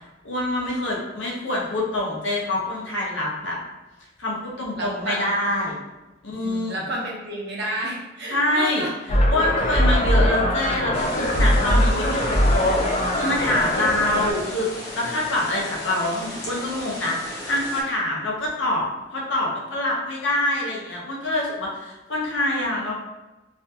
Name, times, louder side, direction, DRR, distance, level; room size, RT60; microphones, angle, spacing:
voice 1, 0.2-3.6 4.2-5.8 6.2-6.8 8.3-8.8 9.3-18.8 19.1-22.9, left 1 dB, 80° left, -3 dB, 0.7 m, -25 dB
voice 2, 4.7-5.3 6.4-8.9, right 1 dB, 60° right, -3 dB, 0.7 m, -31 dB
sound 1, 9.1-14.3, equal, 35° left, 0.3 m, -21 dB
sound 2, 10.9-17.8, left 1 dB, 60° left, 0.9 m, -35 dB
2.5 x 2.2 x 2.7 m, 1.1 s
head